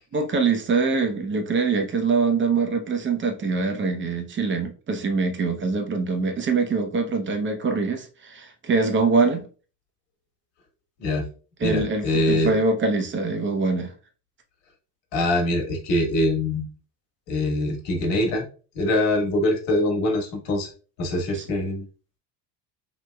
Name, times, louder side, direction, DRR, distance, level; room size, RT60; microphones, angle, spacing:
voice 1, 0.1-9.4 11.6-13.9 21.3-21.4, right 4 dB, 25° right, 0.7 m, -24 dB
voice 2, 11.6-12.5 15.1-16.7 17.3-18.5 18.7-20.7 21.0-21.8, left 1 dB, 60° left, 1.4 m, -23 dB
3.1 x 2.9 x 2.2 m
supercardioid pair, 90°, 49 cm